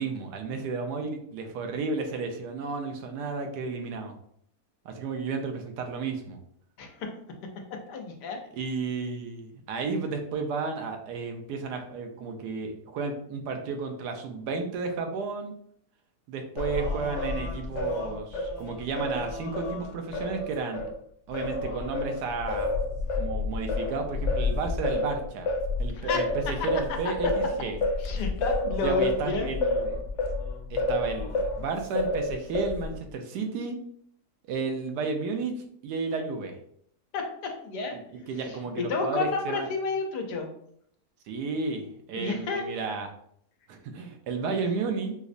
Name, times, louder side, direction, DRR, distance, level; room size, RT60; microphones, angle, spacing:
voice 1, 0.0-4.1 4.8-6.4 8.5-15.5 16.3-20.8 21.3-22.7 23.1-25.5 25.8-27.8 28.8-30.0 30.7-33.8 34.5-36.5 37.9-38.0 38.3-39.7 41.3-43.1 43.7-45.2, right 4 dB, 85° right, 5 dB, 1.2 m, -32 dB
voice 2, 6.8-7.1 7.9-8.4 25.9-26.3 28.0-29.5 37.1-40.5 42.1-42.6, left 4 dB, 90° left, 3 dB, 1.3 m, -31 dB
Singing, 16.6-20.9 21.3-31.6 32.0-33.0, left 2 dB, 70° left, 0.7 m, -29 dB
4.9 x 2.0 x 2.5 m, 0.66 s
omnidirectional pair, 1.7 m